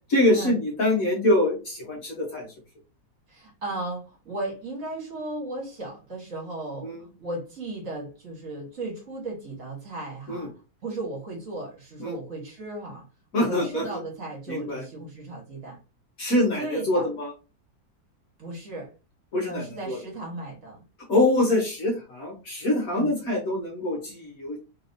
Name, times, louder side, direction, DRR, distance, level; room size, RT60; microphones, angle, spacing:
voice 1, 0.1-2.5 6.8-7.1 10.3-10.5 12.0-12.2 13.3-14.0 14.5-14.9 16.2-17.3 19.3-20.0 21.1-24.6, left 1 dB, 55° left, -2 dB, 1.2 m, -25 dB
voice 2, 3.3-6.9 7.2-10.5 10.8-13.0 13.3-15.8 16.6-17.1 18.4-18.9 19.5-20.8 22.9-23.1, right 2 dB, 45° right, -3 dB, 1.7 m, -35 dB
3.4 x 2.9 x 2.6 m, 0.31 s
omnidirectional pair, 2.0 m